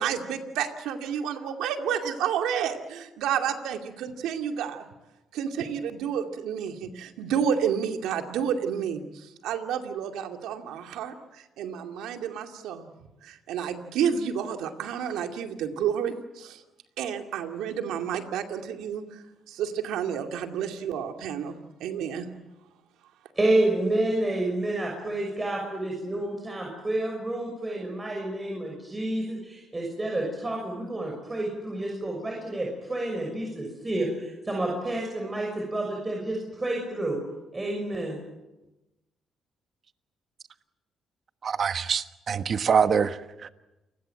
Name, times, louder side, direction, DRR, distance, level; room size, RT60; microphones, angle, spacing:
voice 1, 0.0-4.8 5.3-9.0 9.4-11.1 11.6-12.9 13.2-16.6 17.0-19.0 19.5-22.3, right 8 dB, 90° right, 5 dB, 2.4 m, -30 dB
voice 2, 23.3-37.2 37.5-38.2, right 1 dB, 20° right, 0 dB, 6.5 m, -29 dB
voice 3, 41.4-43.5, right 6 dB, 50° right, 11 dB, 1.3 m, -25 dB
29.0 x 20.5 x 7.7 m, 1.0 s
cardioid pair, 90°, 0 cm